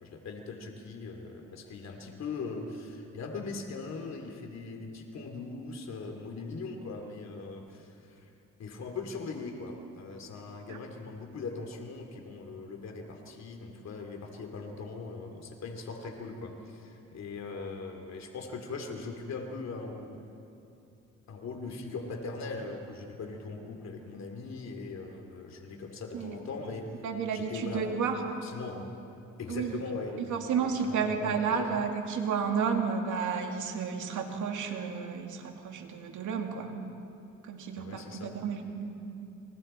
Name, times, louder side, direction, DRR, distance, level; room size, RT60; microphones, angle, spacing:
voice 1, 0.0-8.3 8.6-20.3 21.3-26.9 27.3-27.8 28.4-29.0 29.4-31.8 37.8-38.3, left 3 dB, 60° left, 3 dB, 2.9 m, -40 dB
voice 2, 27.0-28.4 29.5-29.8 30.2-36.7 37.5-39.0, right 6 dB, 80° right, 3 dB, 2.5 m, -32 dB
28.5 x 26.0 x 4.5 m, 2.7 s
cardioid pair, 90°, 30 cm